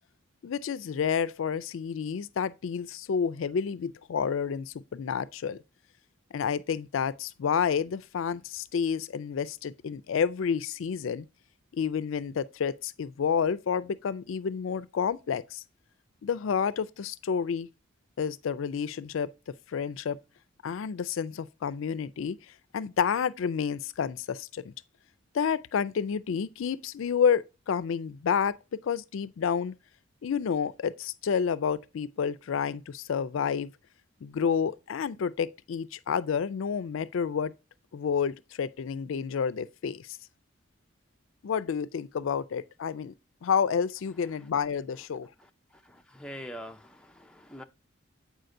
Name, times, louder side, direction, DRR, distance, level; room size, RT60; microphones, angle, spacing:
voice 1, 0.4-5.6 6.3-11.3 11.7-15.6 16.2-17.7 18.2-19.3 19.7-20.2 20.6-22.4 22.7-24.7 25.3-29.7 30.2-33.7 34.2-37.5 37.9-40.1 41.4-43.1 43.4-45.3, left 7 dB, 75° left, 0.4 m, -29 dB
voice 2, 45.9-47.6, equal, 5° left, 0.5 m, -43 dB
7.7 x 4.9 x 2.6 m
head